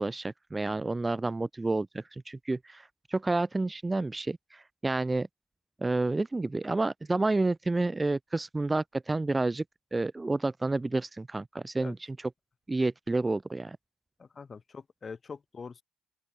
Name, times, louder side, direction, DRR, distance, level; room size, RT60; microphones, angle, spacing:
voice 1, 0.0-5.3 5.8-9.6 9.9-12.3 12.7-13.8, right 2 dB, 20° right, 0.4 m, -30 dB
voice 2, 14.2-15.8, left 5 dB, 40° left, 5.2 m, -43 dB
open air
supercardioid pair, 60°, 0 cm